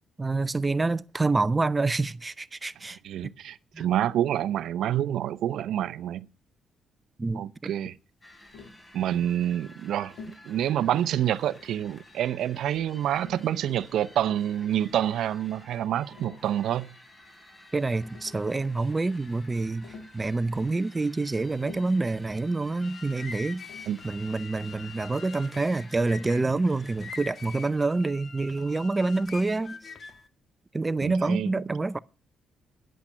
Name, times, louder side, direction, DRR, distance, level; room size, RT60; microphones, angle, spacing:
voice 1, 0.2-3.3 3.7-3.9 7.2-7.7 17.7-23.6 24.0-29.8 30.7-32.0, right 3 dB, 20° right, 0.6 m, -27 dB
voice 2, 3.0-6.3 7.3-7.9 8.9-10.1 10.4-17.0 23.9-24.0 31.0-31.5, right 11 dB, 75° right, 0.7 m, -27 dB
sound 1, 8.2-27.8, left 1 dB, 25° left, 3.4 m, -53 dB
Tap, 8.5-8.8 10.2-10.5 11.5-12.1 13.1-13.9 14.9-15.3 16.0-16.5 17.7-17.8 18.0-18.5 19.8-20.2 21.6-22.1 23.7-24.0, left 4 dB, 80° left, 2.7 m, -48 dB
sound 2, 22.6-30.3, left 5 dB, 40° left, 1.4 m, -44 dB
10.5 x 8.4 x 8.6 m
cardioid pair, 90°, 0 cm